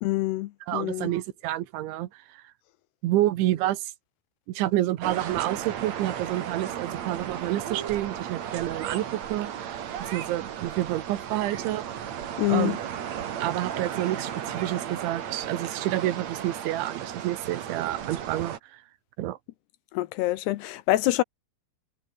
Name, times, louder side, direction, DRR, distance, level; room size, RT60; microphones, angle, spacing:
voice 1, 0.0-1.1 12.4-12.8 19.9-21.2, left 17 dB, 80° left, 2.6 m, -26 dB
voice 2, 0.7-2.4 3.0-3.9 4.5-9.8 10.1-11.9 12.5-12.8 13.4-18.8 19.2-19.4, right 15 dB, 90° right, 3.8 m, -29 dB
sound 1, 5.0-18.6, right 9 dB, 50° right, 2.4 m, -35 dB
omnidirectional pair, 5.2 m